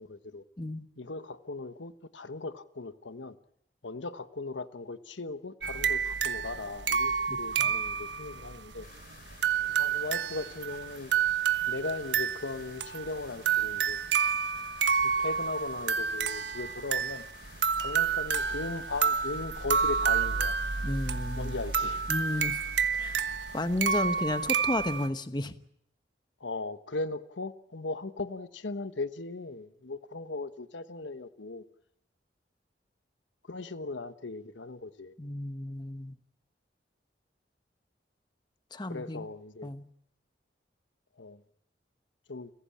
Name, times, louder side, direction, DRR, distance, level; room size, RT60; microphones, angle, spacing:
voice 1, 0.0-0.4 1.0-3.4 3.8-8.9 9.8-11.1 11.7-14.0 15.0-17.3 17.8-20.6 21.3-22.0 26.4-31.6 33.5-35.1 38.8-39.7 41.2-41.4 42.3-42.5, left 3 dB, 90° left, 12 dB, 1.2 m, -38 dB
voice 2, 0.6-0.9 7.3-7.7 20.8-21.5 22.1-22.6 23.0-23.3 23.5-25.6 35.2-36.2 38.7-39.3 39.6-39.9, left 1 dB, 25° left, 10 dB, 1.1 m, -33 dB
sound 1, 5.6-25.1, right 6 dB, 75° right, 1.2 m, -29 dB
sound 2, 8.8-23.6, left 5 dB, 55° left, 3.8 m, -54 dB
30.0 x 16.0 x 8.6 m, 0.73 s
head